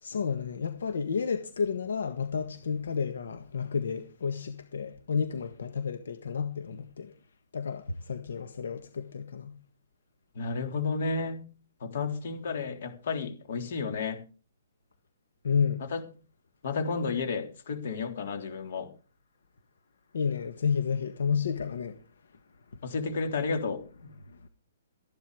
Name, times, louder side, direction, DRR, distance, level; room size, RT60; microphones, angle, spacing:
voice 1, 0.0-7.1 7.5-9.6 15.4-15.8 20.1-22.0 24.3-24.5, left 6 dB, 80° left, 1.6 m, -31 dB
voice 2, 10.4-11.4 11.8-14.2 15.9-16.0 16.6-18.9 22.8-23.8, left 4 dB, 50° left, 3.5 m, -32 dB
14.0 x 11.0 x 4.9 m
hypercardioid pair, 170°, 0 cm